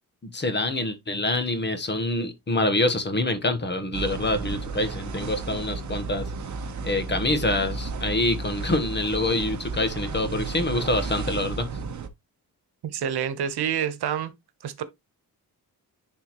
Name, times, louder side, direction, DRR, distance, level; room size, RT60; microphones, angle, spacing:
voice 1, 0.3-6.3 6.8-11.7, left 2 dB, 30° left, 1.3 m, -26 dB
sound 1, 3.9-12.1, right 4 dB, 50° right, 1.1 m, -33 dB
voice 2, 12.8-14.3 14.6-14.8, right 9 dB, 85° right, 1.2 m, -28 dB
10.5 x 4.0 x 3.1 m
wide cardioid pair, 150°, 38 cm